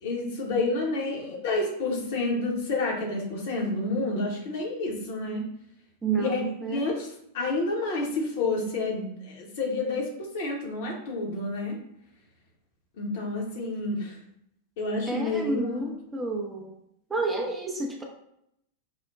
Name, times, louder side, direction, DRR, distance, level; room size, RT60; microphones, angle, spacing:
voice 1, 0.0-5.4 6.2-7.1 7.3-10.1 10.3-11.7 13.0-14.2 14.8-15.9, left 2 dB, 50° left, -1 dB, 0.9 m, -29 dB
voice 2, 6.0-6.9 15.1-16.7 17.1-18.0, right 3 dB, 15° right, 1 dB, 0.5 m, -30 dB
5.4 x 2.1 x 2.3 m, 0.75 s
figure-of-eight pair, 90°, 0 cm